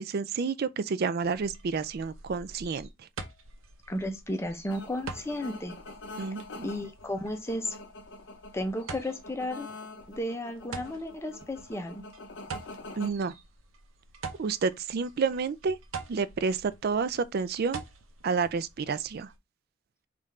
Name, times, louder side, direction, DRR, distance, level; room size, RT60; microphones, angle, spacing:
voice 1, 0.0-2.9 6.2-6.7 13.0-13.3 14.4-15.8 16.1-17.8 18.2-19.3, right 5 dB, 50° right, 0.4 m, -30 dB
sound 1, 1.2-19.4, right 4 dB, 90° right, 0.7 m, -46 dB
voice 2, 3.9-5.7 6.6-7.8 8.5-9.7 10.1-12.0, left 1 dB, 15° left, 0.6 m, -33 dB
sound 2, 4.7-13.1, left 2 dB, 60° left, 0.6 m, -46 dB
3.6 x 2.5 x 4.2 m
head